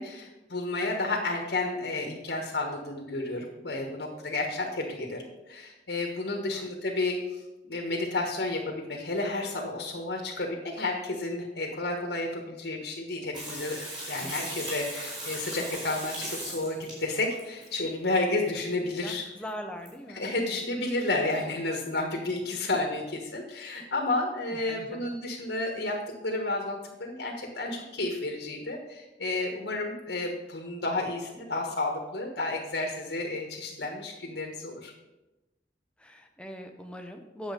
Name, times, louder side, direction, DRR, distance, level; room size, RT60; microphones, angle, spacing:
voice 1, 0.0-7.2 7.7-13.8 14.0-19.2 20.1-34.9, left 2 dB, 75° left, 1 dB, 1.5 m, -31 dB
Water tap faucet / Sink (filling or washing), 13.3-17.6 19.1-19.2 19.5-19.6 19.9-20.0, right 1 dB, 25° right, 3.7 m, -38 dB
voice 2, 19.0-20.3 20.5-20.6 24.5-25.1 25.3-25.5 36.0-37.5, equal, 5° left, 4 dB, 0.8 m, -41 dB
8.9 x 7.3 x 5.2 m, 1.0 s
head